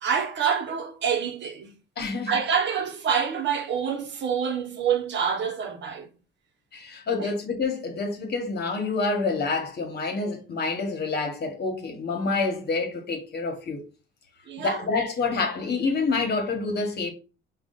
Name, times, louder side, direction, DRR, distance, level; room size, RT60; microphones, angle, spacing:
voice 1, 0.0-1.8 2.3-6.1 7.2-7.3 14.5-14.9, right 7 dB, 65° right, 0.8 m, -27 dB
voice 2, 2.0-2.4 6.7-13.8 14.6-17.1, left 4 dB, 55° left, 1.2 m, -27 dB
4.8 x 2.4 x 3.8 m
cardioid pair, 90°, 20 cm